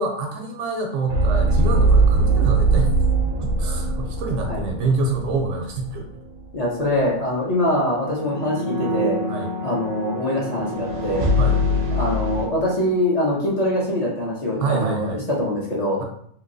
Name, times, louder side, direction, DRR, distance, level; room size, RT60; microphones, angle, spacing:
voice 1, 0.0-3.0 3.4-6.1 9.3-9.5 11.4-11.6 14.6-15.2, right 3 dB, 75° right, 2 dB, 0.9 m, -26 dB
sound 1, 1.1-5.9 6.2-6.4 7.9-12.5, right 2 dB, 55° right, 0.6 m, -22 dB
voice 2, 6.5-9.2 9.6-11.3 11.9-16.0, left 1 dB, 40° left, -5 dB, 0.7 m, -23 dB
2.9 x 2.7 x 2.6 m, 0.64 s
omnidirectional pair, 1.3 m